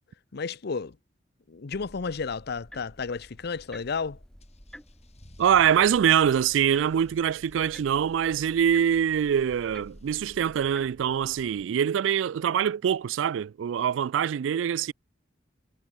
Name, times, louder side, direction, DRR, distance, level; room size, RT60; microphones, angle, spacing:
voice 1, 0.3-1.0 1.5-4.2, left 5 dB, 60° left, 0.7 m, -32 dB
Clock ticking, 1.7-11.6, equal, 5° left, 0.5 m, -50 dB
Car / Engine starting / Accelerating revving vroom, 4.4-10.9, left 1 dB, 35° left, 4.5 m, -56 dB
voice 2, 5.4-14.9, right 8 dB, 75° right, 0.3 m, -24 dB
head